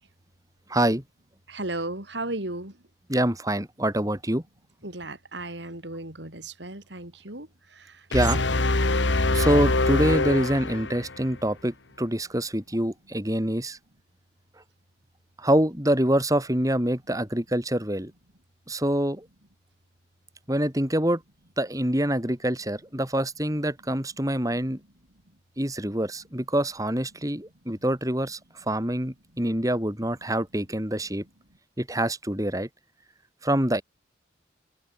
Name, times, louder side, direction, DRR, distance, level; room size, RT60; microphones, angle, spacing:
voice 1, 0.7-1.0 3.1-4.4 8.1-8.4 9.3-13.8 15.4-18.1 18.7-19.3 20.5-21.2 21.6-24.8 25.6-28.4 28.7-31.2 31.8-32.7 33.4-33.8, right 1 dB, 20° right, 3.9 m, -25 dB
voice 2, 1.5-2.8 4.8-8.1, right 2 dB, 70° right, 5.0 m, -35 dB
sound 1, 8.1-11.3, left 2 dB, 75° left, 1.7 m, -24 dB
open air
head